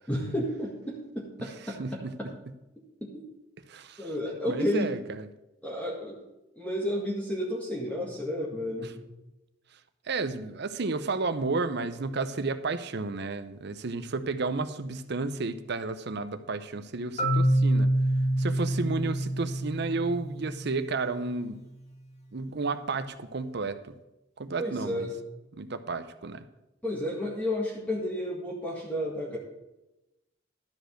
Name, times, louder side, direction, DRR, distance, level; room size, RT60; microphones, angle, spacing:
voice 1, 0.1-2.3 3.0-3.2 4.0-4.9 5.6-6.2 6.6-9.0 24.6-25.1 26.8-29.4, left 1 dB, 10° left, -4 dB, 1.7 m, -32 dB
voice 2, 1.8-2.1 3.7-4.1 4.4-5.3 8.8-8.9 10.1-17.9 18.4-21.6 22.3-23.9 24.4-25.1 25.5-26.4, right 3 dB, 60° right, 11 dB, 0.7 m, -32 dB
Marimba xylophone, 17.2-21.1, right 1 dB, 35° left, 1.7 m, -27 dB
12.5 x 5.2 x 6.4 m, 0.95 s
head